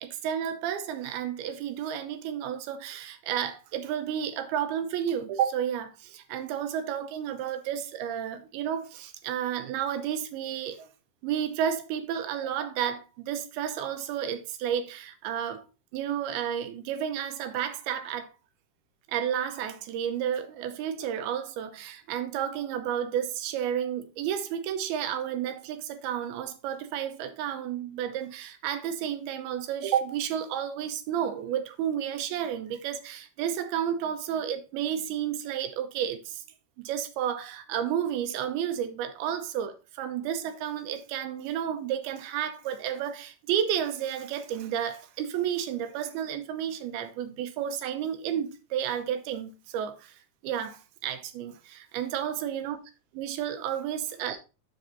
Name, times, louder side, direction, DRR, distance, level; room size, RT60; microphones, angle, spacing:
voice 1, 0.0-10.9 11.2-15.7 15.9-18.3 19.1-36.4 36.8-50.2 50.4-52.8 53.2-54.4, right 9 dB, 85° right, 2.6 m, -31 dB
6.2 x 5.1 x 4.0 m
omnidirectional pair, 4.6 m